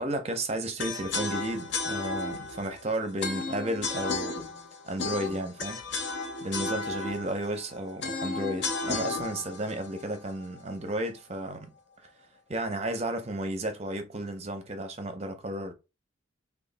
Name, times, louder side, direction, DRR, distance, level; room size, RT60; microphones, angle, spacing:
voice 1, 0.0-4.5 4.8-5.8 6.4-11.7 12.0-12.1 12.5-15.7, right 1 dB, 30° right, 0.6 m, -33 dB
sound 1, 0.8-10.9, left 3 dB, 60° left, 0.7 m, -34 dB
3.1 x 2.3 x 3.9 m
head